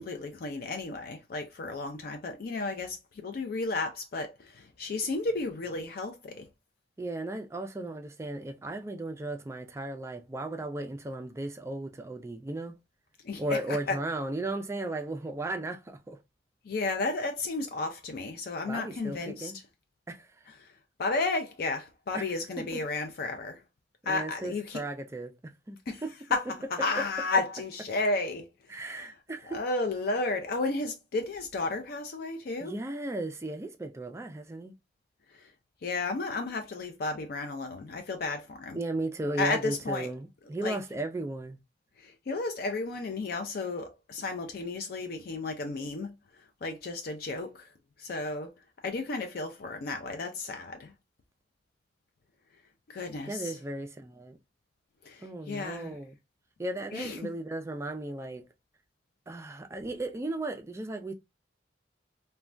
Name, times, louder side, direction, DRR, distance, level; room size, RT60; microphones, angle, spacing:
voice 1, 0.0-6.5 13.2-14.0 16.6-19.5 20.5-20.7 21.0-23.6 24.0-24.8 25.9-26.0 26.3-29.1 29.5-32.8 35.3-35.5 35.8-38.8 39.4-40.1 40.6-40.8 42.0-47.7 48.0-48.5 48.8-50.9 52.9-53.6 55.0-56.0 56.9-57.2, left 3 dB, 55° left, 0.4 m, -33 dB
voice 2, 7.0-12.8 13.4-16.2 18.7-19.6 20.1-20.3 22.1-22.2 22.7-22.8 24.1-26.1 28.7-29.6 32.6-34.7 38.7-41.6 53.3-54.4 55.2-56.1 56.6-58.5 59.3-61.1, right 2 dB, 15° right, 0.3 m, -35 dB
3.2 x 2.2 x 2.4 m
head